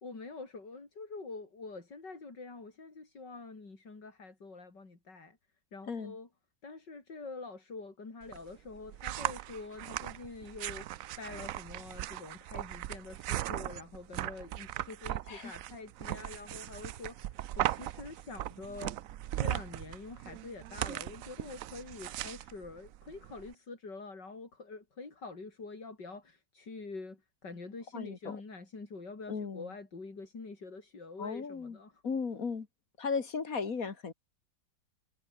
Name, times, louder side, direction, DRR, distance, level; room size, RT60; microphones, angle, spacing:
voice 1, 0.0-5.4 5.7-6.3 6.6-19.0 19.4-31.9, left 3 dB, 75° left, 5.0 m, -46 dB
sound 1, 8.2-23.5, right 13 dB, 70° right, 0.8 m, -38 dB
voice 2, 27.9-28.4 29.3-29.7 31.2-31.8 32.0-32.7 33.0-34.1, left 5 dB, 50° left, 2.3 m, -36 dB
omnidirectional pair, 1.9 m